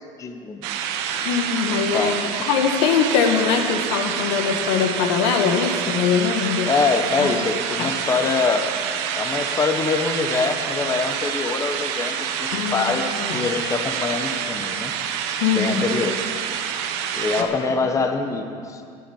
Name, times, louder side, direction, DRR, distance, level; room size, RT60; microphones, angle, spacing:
voice 1, 0.2-0.7 1.9-2.4 6.6-8.7 9.1-14.9 15.5-16.2 17.1-18.8, left 4 dB, 25° left, 6 dB, 1.0 m, -24 dB
sound 1, 0.6-17.4, right 8 dB, 85° right, 1.2 m, -27 dB
voice 2, 1.2-2.1 2.4-6.7 7.2-7.5 7.8-7.9 12.5-13.5 15.4-15.8 17.4-17.5, left 7 dB, 85° left, 5 dB, 1.6 m, -22 dB
15.0 x 10.5 x 7.0 m, 2.3 s
cardioid pair, 130°, 14 cm